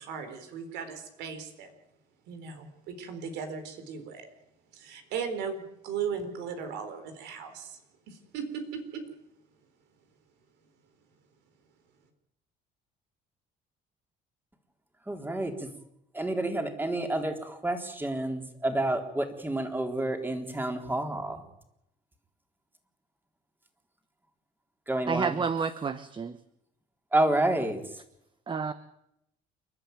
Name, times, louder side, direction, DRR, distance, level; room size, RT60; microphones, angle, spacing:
voice 1, 0.0-1.7 2.3-4.3 4.7-7.8 8.1-9.0, right 6 dB, 90° right, 8 dB, 4.3 m, -37 dB
voice 2, 15.1-15.7 16.1-21.5 24.9-25.4 27.1-27.8, right 1 dB, 10° right, 4 dB, 3.7 m, -29 dB
voice 3, 25.1-26.4 28.5-28.7, right 5 dB, 30° right, 12 dB, 1.1 m, -30 dB
29.0 x 12.0 x 9.4 m, 0.80 s
cardioid pair, 110°, 17 cm